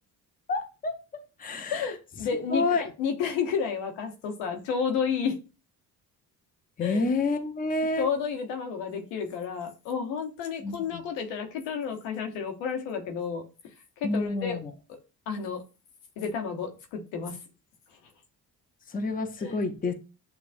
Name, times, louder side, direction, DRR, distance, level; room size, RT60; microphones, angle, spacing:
voice 1, 0.5-1.9 2.5-2.8 6.8-8.1 10.6-11.0 14.0-14.7 18.9-19.9, left 3 dB, 20° left, 7 dB, 0.7 m, -29 dB
voice 2, 1.7-5.3 6.8-7.0 8.0-13.4 14.0-14.6 15.3-15.6 16.2-17.4 19.4-19.6, left 6 dB, 80° left, 4 dB, 1.1 m, -31 dB
6.7 x 2.3 x 2.5 m, 0.31 s
supercardioid pair, 65°, 43 cm